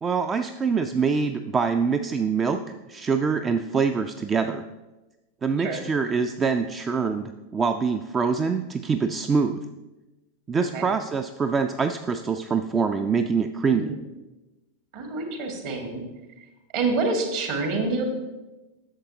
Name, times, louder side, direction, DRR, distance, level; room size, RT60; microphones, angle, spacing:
voice 1, 0.0-2.6 2.9-4.6 5.4-9.6 10.5-13.9, right 5 dB, 20° right, 8 dB, 0.3 m, -24 dB
voice 2, 14.9-16.0 16.7-18.0, right 3 dB, 50° right, 3 dB, 1.7 m, -27 dB
11.0 x 6.9 x 2.8 m, 1.1 s
figure-of-eight pair, 90°, 0 cm